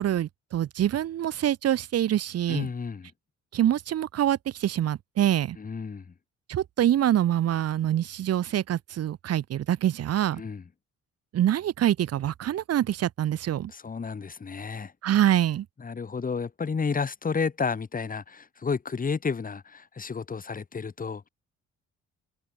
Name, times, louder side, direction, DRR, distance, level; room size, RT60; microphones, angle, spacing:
voice 1, 0.0-2.7 3.5-5.6 6.5-10.4 11.3-13.7 15.0-15.7, right 11 dB, 55° right, 0.8 m, -25 dB
voice 2, 2.5-3.1 5.6-6.1 10.4-10.6 13.7-14.9 15.8-21.3, left 5 dB, 30° left, 1.3 m, -31 dB
cardioid pair, 90°, 30 cm